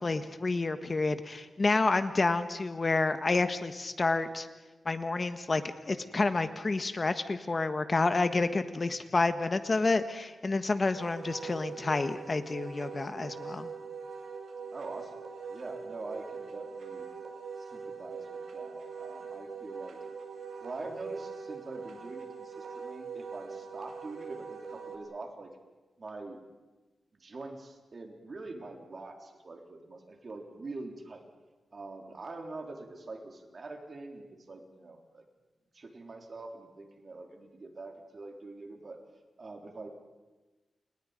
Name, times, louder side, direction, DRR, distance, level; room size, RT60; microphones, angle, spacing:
voice 1, 0.0-4.5 4.8-5.6 5.9-13.7, left 3 dB, 35° left, 9 dB, 1.3 m, -29 dB
Wind instrument woodwind instrument, 10.9-25.0, right 5 dB, 90° right, 4.8 m, -42 dB
voice 2, 14.7-15.2 15.5-17.1 17.6-20.0 20.6-25.5 26.0-26.4 27.1-31.2 31.7-35.2 35.7-39.0 39.4-39.9, right 3 dB, 45° right, 3 dB, 4.0 m, -44 dB
30.0 x 29.0 x 5.3 m, 1.2 s
wide cardioid pair, 115°, 0 cm